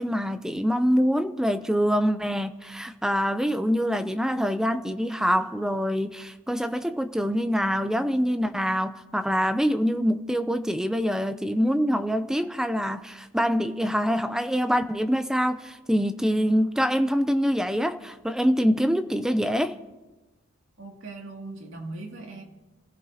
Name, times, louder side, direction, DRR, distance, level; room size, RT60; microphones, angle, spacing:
voice 1, 0.0-19.8, equal, 5° right, 0.5 m, -25 dB
voice 2, 20.8-22.4, right 2 dB, 65° right, 2.3 m, -39 dB
28.0 x 15.0 x 2.8 m
head